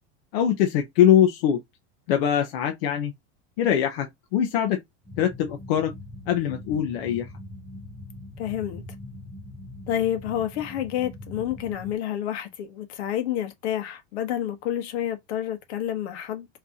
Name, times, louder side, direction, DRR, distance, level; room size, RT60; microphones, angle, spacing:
voice 1, 0.3-1.6 2.1-3.1 3.6-4.1 4.3-4.8 5.2-5.9 6.3-7.3, left 10 dB, 60° left, 0.9 m, -22 dB
sound 1, 5.0-11.9, left 1 dB, 5° left, 0.3 m, -42 dB
voice 2, 8.4-8.8 9.9-16.5, left 11 dB, 80° left, 1.3 m, -29 dB
4.6 x 2.8 x 3.6 m
supercardioid pair, 175°, 32 cm